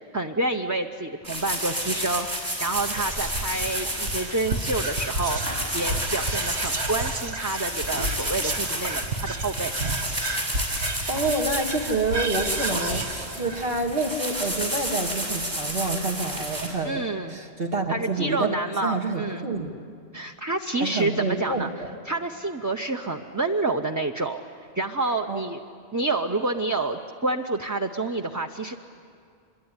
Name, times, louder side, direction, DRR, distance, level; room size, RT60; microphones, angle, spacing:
voice 1, 0.1-9.8 16.8-17.4 17.9-19.5 20.1-21.7 22.1-24.4 24.7-25.6 25.9-28.7, right 2 dB, 20° right, 3 dB, 0.7 m, -28 dB
sound 1, 1.2-16.7, equal, 45° right, 6.2 m, -31 dB
Whispering, 2.7-15.2, right 2 dB, 85° right, 1.6 m, -32 dB
voice 2, 11.1-17.0 17.3-18.5 18.8-19.7 20.8-21.9 25.3-25.4, right 3 dB, 65° right, 0 dB, 2.0 m, -28 dB
25.5 x 22.5 x 9.7 m, 2.2 s
omnidirectional pair, 1.1 m